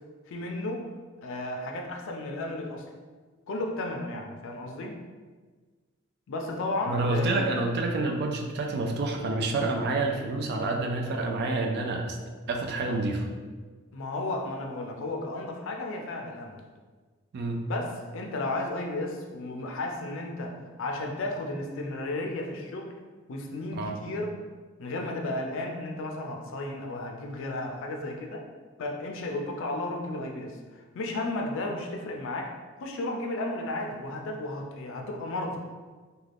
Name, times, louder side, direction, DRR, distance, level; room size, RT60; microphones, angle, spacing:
voice 1, 0.3-0.9 1.2-2.8 3.5-4.9 6.3-7.5 13.9-16.7 17.6-22.9 23.3-24.3 24.8-28.4 28.8-32.5 32.8-35.6, left 2 dB, 65° left, 2 dB, 0.4 m, -33 dB
voice 2, 6.9-12.2 12.5-13.3 17.3-17.6 23.7-24.0, right 2 dB, 50° right, 2 dB, 0.4 m, -28 dB
2.4 x 2.2 x 3.3 m, 1.4 s
head